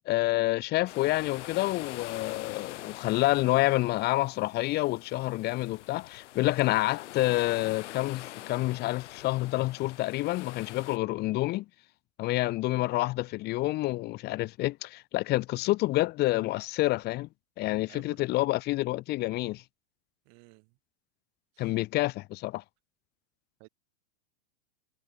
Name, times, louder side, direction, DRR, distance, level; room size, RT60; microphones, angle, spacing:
voice 1, 0.1-11.6 12.2-17.3 17.6-19.6 21.6-22.6, left 19 dB, 30° left, 0.8 m, -28 dB
sound 1, 0.9-11.0, left 15 dB, 75° left, 2.2 m, -44 dB
voice 2, 17.9-18.2 20.2-20.7 21.5-21.8 23.6-23.7, right 35 dB, 45° right, 5.0 m, -54 dB
supercardioid pair, 150°, 36 cm